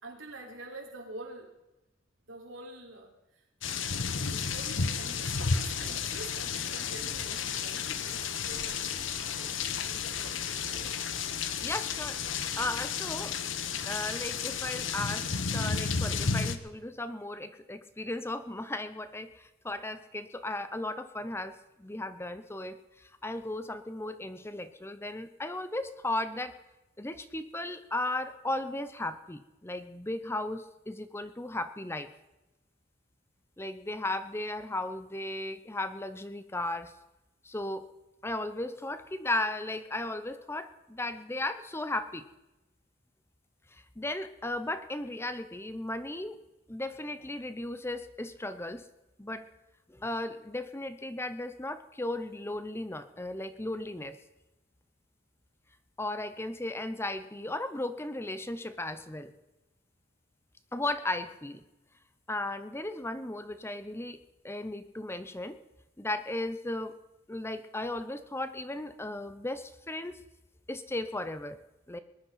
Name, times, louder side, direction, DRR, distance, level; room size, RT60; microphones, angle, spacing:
voice 1, 0.0-1.5 2.3-3.4 4.3-11.1, right 2 dB, 75° right, 1 dB, 3.9 m, -47 dB
sound 1, 3.6-16.6, left 6 dB, 70° left, 1.1 m, -32 dB
voice 2, 11.6-13.3 13.9-26.6 27.0-32.1 33.6-36.9 37.4-37.9 38.2-42.2 43.7-46.4 46.7-48.9 49.2-49.5 49.9-54.2 56.0-59.3 60.7-61.6 62.3-64.2 64.4-65.6 66.0-67.0 67.3-70.2 70.7-71.6 71.9-72.0, left 2 dB, 10° left, 11 dB, 0.7 m, -36 dB
20.0 x 11.0 x 5.7 m, 0.96 s
head